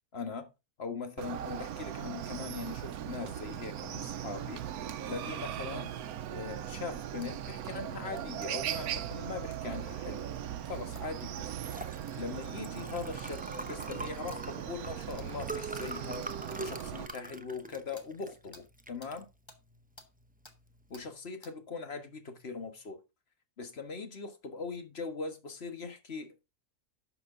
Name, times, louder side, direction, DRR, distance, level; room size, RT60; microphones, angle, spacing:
voice 1, 0.1-0.5 0.8-4.7 5.1-5.9 6.3-10.3 10.6-11.4 12.1-16.3 16.6-19.3 20.9-23.0 23.6-26.5, left 4 dB, 40° left, 1.7 m, -41 dB
Chicken rooster, 1.2-17.1, right 10 dB, 75° right, 1.1 m, -39 dB
sound 1, 7.2-7.3 8.1-8.5 9.5-9.6 11.0-11.1 12.1-12.2 12.9-13.0 13.8-14.0 14.3-14.4 15.2-15.3 15.7-15.8 16.2-17.2 17.9-18.1 18.5-18.7 19.0-19.1 19.5-19.6 20.0-20.1 20.5-20.6 20.9-21.1 21.4-21.6, left 2 dB, 20° left, 1.2 m, -55 dB
Liquid, 10.9-21.0, right 2 dB, 10° right, 0.4 m, -44 dB
11.5 x 5.9 x 3.8 m
omnidirectional pair, 1.7 m